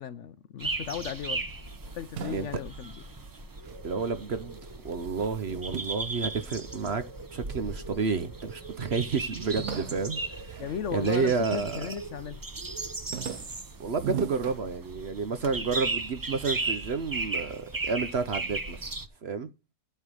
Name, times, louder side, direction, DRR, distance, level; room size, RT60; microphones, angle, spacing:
voice 1, 0.0-1.5 1.9-2.9 10.6-12.4, left 8 dB, 65° left, 0.8 m, -36 dB
sound 1, 0.6-19.1, right 3 dB, 25° right, 0.5 m, -36 dB
sound 2, 1.5-4.2 4.5-7.0 7.6-8.3 8.6-8.7 9.0-11.5 11.9-12.4 12.7-15.3, right 9 dB, 85° right, 1.3 m, -41 dB
voice 2, 3.8-4.6 4.8-7.0 7.3-10.6 10.9-11.9 13.8-18.8 19.2-19.5, right 5 dB, 50° right, 0.9 m, -30 dB
8.1 x 5.6 x 6.2 m
omnidirectional pair, 1.6 m